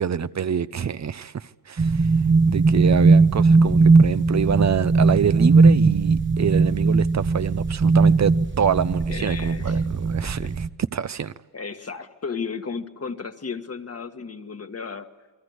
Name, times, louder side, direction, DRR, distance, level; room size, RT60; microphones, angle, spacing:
voice 1, 0.0-2.1 2.5-11.3, right 8 dB, 55° right, 0.8 m, -26 dB
sound 1, 1.8-10.7, right 4 dB, 35° right, 1.0 m, -18 dB
voice 2, 9.1-9.8 10.4-10.5 11.5-15.1, left 5 dB, 45° left, 1.7 m, -34 dB
29.0 x 23.0 x 8.1 m
cardioid pair, 80°, 33 cm